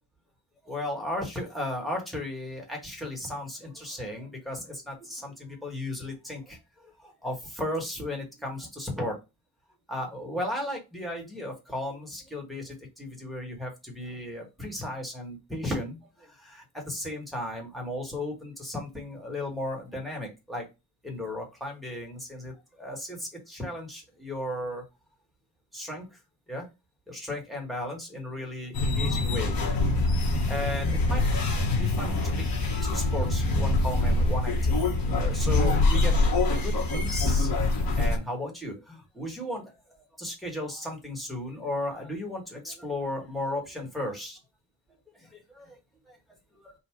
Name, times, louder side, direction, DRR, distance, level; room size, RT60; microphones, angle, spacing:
voice 1, 0.6-9.2 9.9-20.6 21.0-24.8 25.7-26.0 26.5-26.7 27.1-29.6 29.9-31.3 31.7-32.4 32.8-34.8 35.0-36.1 36.5-44.4 45.1-45.8 46.1-46.2 46.5-46.7, left 1 dB, ahead, 0 dB, 1.6 m, -35 dB
sound 1, 28.7-38.2, left 2 dB, 60° left, 1.4 m, -24 dB
4.1 x 2.5 x 4.6 m, 0.24 s
wide cardioid pair, 150°, 40 cm